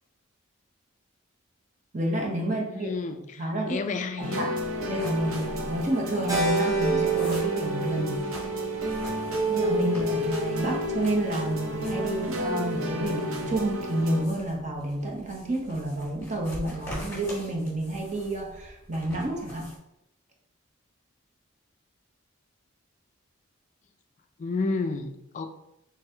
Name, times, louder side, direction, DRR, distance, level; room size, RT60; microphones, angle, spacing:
voice 1, 1.9-2.9 3.4-3.8 4.2-4.5 4.9-8.2 9.5-19.7, right 1 dB, 35° right, 0 dB, 0.7 m, -29 dB
voice 2, 2.5-4.5 24.4-25.5, left 3 dB, 35° left, 7 dB, 0.3 m, -31 dB
sound 1, 4.2-14.2, equal, 90° right, 0.6 m, -30 dB
sound 2, 4.6-19.8, equal, 10° left, 1.5 m, -44 dB
Keyboard (musical), 6.3-10.7, right 4 dB, 20° right, 1.1 m, -32 dB
3.9 x 3.6 x 2.7 m, 0.84 s
head